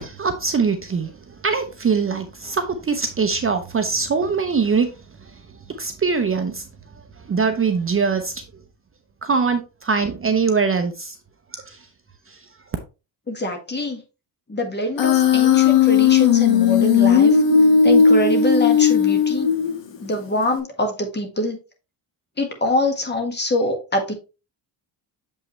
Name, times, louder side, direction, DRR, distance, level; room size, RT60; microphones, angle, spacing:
voice 1, 0.0-1.1 1.4-4.9 5.8-6.6 7.3-8.3 9.2-11.1 11.5-11.6, right 5 dB, 30° right, 0.7 m, -22 dB
voice 2, 13.3-14.0 14.5-17.4 17.8-19.5 20.0-21.6 22.4-24.1, left 1 dB, 25° left, 1.7 m, -24 dB
Human voice, 15.0-20.0, left 6 dB, 75° left, 1.8 m, -16 dB
7.3 x 5.5 x 3.1 m
cardioid pair, 125°, 45 cm